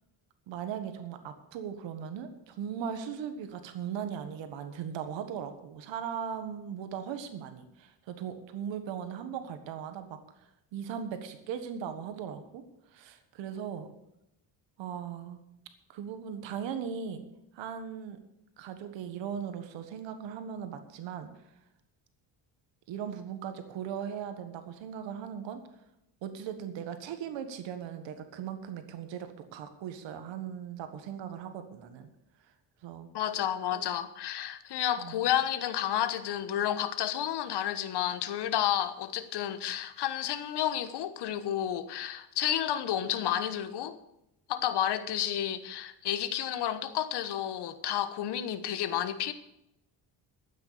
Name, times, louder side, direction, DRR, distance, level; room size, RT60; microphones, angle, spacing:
voice 1, 0.5-12.6 12.9-13.9 14.8-15.4 15.9-17.2 17.5-18.2 18.6-21.5 22.9-25.6 26.2-32.1 32.4-32.5 32.8-33.1 33.7-33.9 35.0-35.3, right 8 dB, 85° right, 1.6 m, -38 dB
voice 2, 33.1-43.9 44.5-49.3, left 11 dB, 65° left, 1.3 m, -31 dB
13.0 x 9.1 x 6.9 m
cardioid pair, 140°, 43 cm